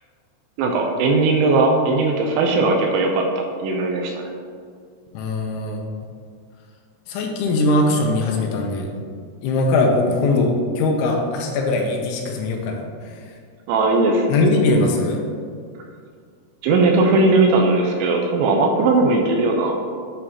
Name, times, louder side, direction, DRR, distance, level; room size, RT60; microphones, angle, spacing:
voice 1, 0.6-4.3 13.7-14.3 16.6-19.8, right 3 dB, 85° right, 1 dB, 2.8 m, -18 dB
voice 2, 5.1-5.8 7.1-9.0 9.4-12.8 14.3-15.2 18.8-19.0, left 2 dB, 85° left, 1 dB, 3.0 m, -20 dB
9.7 x 3.7 x 2.9 m, 2.1 s
omnidirectional pair, 5.5 m